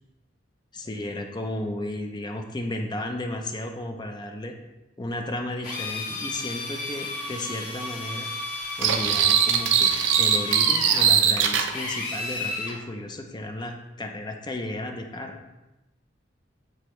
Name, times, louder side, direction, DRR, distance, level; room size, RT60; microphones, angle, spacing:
voice 1, 0.7-4.5 5.0-8.3 8.8-15.4, left 1 dB, 25° left, 4 dB, 0.6 m, -33 dB
Drill, 5.6-12.8, left 2 dB, 45° left, 1.7 m, -33 dB
sound 1, 8.8-11.7, right 8 dB, 75° right, 0.5 m, -21 dB
9.4 x 3.4 x 3.1 m, 1.0 s
head